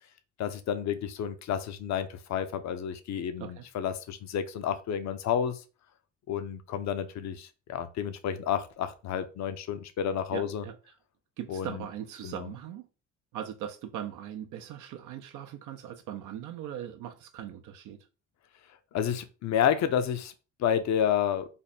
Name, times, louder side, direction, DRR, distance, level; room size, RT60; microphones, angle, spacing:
voice 1, 0.4-5.6 6.3-10.6 11.5-11.8 12.2-12.5 18.9-20.3 20.6-21.5, left 9 dB, 65° left, 0.6 m, -30 dB
voice 2, 3.4-3.7 10.3-11.0 11.4-12.9 13.3-18.0, right 10 dB, 85° right, 0.5 m, -40 dB
3.5 x 2.1 x 4.0 m
cardioid pair, 90°, 30 cm